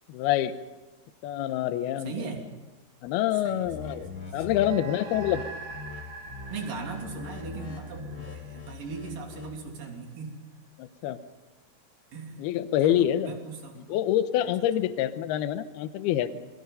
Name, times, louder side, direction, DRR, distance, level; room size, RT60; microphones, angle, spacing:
voice 1, 0.1-0.6 1.2-2.1 3.0-5.4 8.2-8.3 10.8-11.2 12.4-13.3 13.8-16.5, left 11 dB, 80° left, 11 dB, 2.8 m, -26 dB
voice 2, 2.0-2.5 3.3-4.5 6.5-10.5 12.1-12.4 12.8-13.8 14.4-14.5, right 4 dB, 55° right, 2 dB, 4.6 m, -39 dB
sound 1, 3.7-4.7 5.1-5.4 5.7-6.0 6.3-9.6, left 4 dB, 50° left, 5.0 m, -41 dB
sound 2, 4.5-9.2, right 4 dB, 80° right, 1.2 m, -44 dB
27.5 x 22.5 x 5.5 m, 1.1 s
omnidirectional pair, 4.7 m